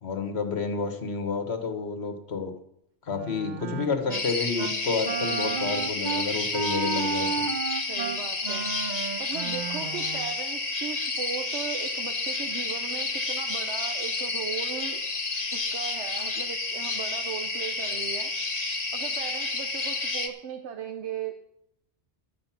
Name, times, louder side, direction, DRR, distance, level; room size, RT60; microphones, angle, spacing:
voice 1, 0.0-2.5 3.1-7.4, left 5 dB, 70° left, 6 dB, 1.6 m, -30 dB
Wind instrument woodwind instrument, 3.1-4.3 4.6-4.8 5.0-10.3, right 6 dB, 50° right, 0.7 m, -33 dB
sound 1, 4.1-20.3, left 3 dB, 40° left, 1.1 m, -30 dB
voice 2, 7.9-8.7 9.2-15.0 15.5-18.3 18.9-21.3, right 8 dB, 85° right, 5 dB, 1.1 m, -37 dB
12.0 x 8.9 x 5.8 m, 0.78 s
omnidirectional pair, 1.1 m